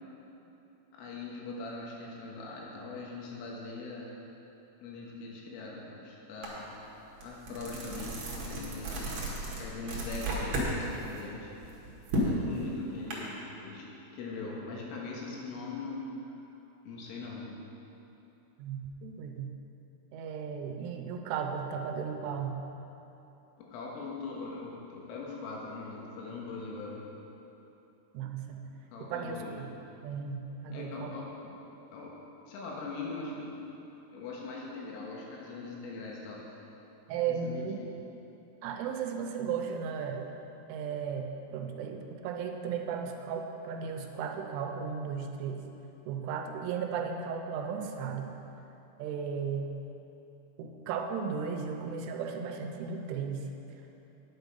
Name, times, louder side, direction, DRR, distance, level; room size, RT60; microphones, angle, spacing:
voice 1, 0.9-4.1 4.8-6.6 7.2-8.2 8.5-9.1 9.6-11.5 12.2-13.9 14.1-16.4 16.9-17.5 23.6-27.0 28.9-29.5 30.7-31.5 31.9-32.1 32.5-33.7 34.1-36.4 37.3-37.9, left 3 dB, 85° left, -3 dB, 4.0 m, -41 dB
sound 1, 6.4-6.6 7.0-10.7 11.1-13.1, right 1 dB, 65° right, 1.7 m, -34 dB
voice 2, 18.6-19.5 20.1-22.6 28.1-28.7 29.1-29.7 30.0-31.1 37.1-37.8 38.6-40.3 40.7-45.6 46.1-48.3 49.0-49.8 50.6-53.5, right 6 dB, 85° right, 4 dB, 3.1 m, -35 dB
9.7 x 8.1 x 5.4 m, 3.0 s
omnidirectional pair, 5.6 m